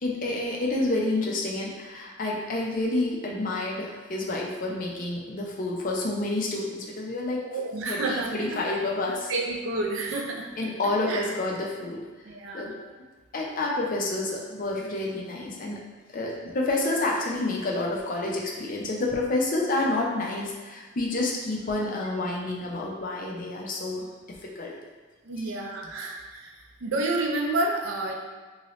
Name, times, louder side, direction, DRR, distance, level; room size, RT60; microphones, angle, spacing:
voice 1, 0.0-7.4 7.8-9.3 10.6-12.0 12.5-12.8 13.3-15.8 16.1-24.1 24.4-24.8 25.4-25.5, left 2 dB, 45° left, -2 dB, 0.5 m, -29 dB
voice 2, 7.4-8.3 9.3-10.5 11.1-11.3 12.3-12.7 25.3-26.5 26.8-28.1, right 2 dB, 90° right, 1 dB, 0.5 m, -29 dB
2.7 x 2.7 x 3.0 m, 1.4 s
head